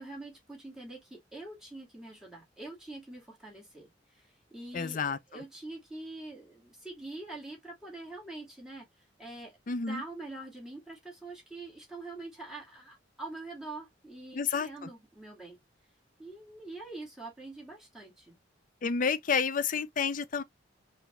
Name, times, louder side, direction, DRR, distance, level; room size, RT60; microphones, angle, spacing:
voice 1, 0.0-15.6 16.2-18.4, right 2 dB, 5° right, 2.1 m, -45 dB
voice 2, 4.7-5.2 9.7-10.0 14.3-14.9 18.8-20.4, left 5 dB, 45° left, 0.5 m, -30 dB
4.7 x 2.7 x 3.3 m
head